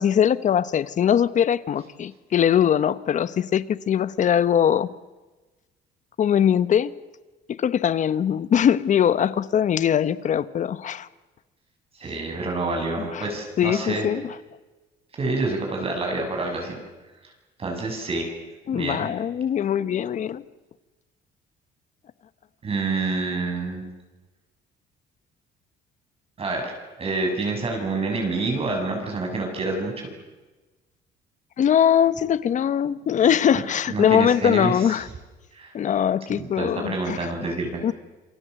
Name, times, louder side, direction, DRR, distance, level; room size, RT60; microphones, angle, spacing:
voice 1, 0.0-4.9 6.2-6.9 7.5-11.1 13.1-13.3 13.6-14.3 18.7-20.4 31.6-35.1 35.7-37.3 37.8-37.9, left 9 dB, 45° left, 16 dB, 1.1 m, -21 dB
voice 2, 12.0-14.1 15.1-16.8 17.6-18.3 18.7-19.1 22.6-23.9 26.4-26.7 27.0-30.1 33.9-35.0 35.5-35.7 36.3-37.8, right 3 dB, 35° right, 2 dB, 6.3 m, -27 dB
28.0 x 23.5 x 7.8 m, 1.2 s
cardioid pair, 110°, 17 cm